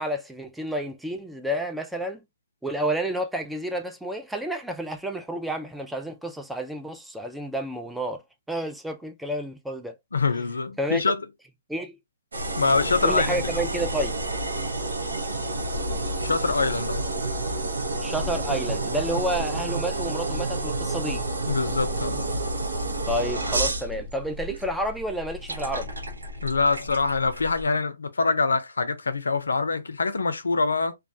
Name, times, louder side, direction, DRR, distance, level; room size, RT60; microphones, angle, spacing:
voice 1, 0.0-2.2 2.6-8.2 8.5-10.0 10.8-11.0 11.7-12.0 13.0-14.1 18.0-21.2 23.1-25.9, right 1 dB, 5° right, 0.3 m, -30 dB
voice 2, 10.1-11.2 12.6-13.5 16.2-17.0 21.5-22.2 26.4-31.0, left 4 dB, 85° left, 0.5 m, -24 dB
sound 1, 12.3-27.6, right 2 dB, 85° right, 0.7 m, -30 dB
2.2 x 2.2 x 2.6 m
hypercardioid pair, 140°, 0 cm